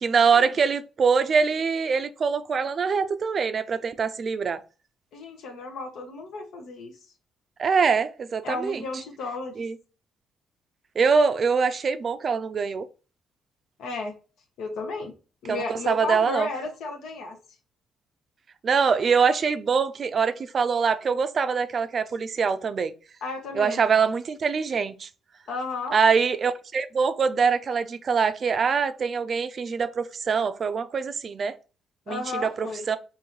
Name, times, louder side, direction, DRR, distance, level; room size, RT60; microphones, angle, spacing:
voice 1, 0.0-4.6 7.6-8.8 9.6-9.7 11.0-12.9 15.5-16.5 18.6-22.9 23.5-25.1 25.9-31.5 32.1-33.0, right 5 dB, 45° right, 0.4 m, -24 dB
voice 2, 5.1-7.0 8.4-9.6 13.8-14.1 14.6-15.1 15.4-17.4 23.2-23.8 25.5-26.0 32.1-32.9, left 3 dB, 80° left, 0.8 m, -33 dB
3.7 x 2.6 x 3.0 m
cardioid pair, 90°, 0 cm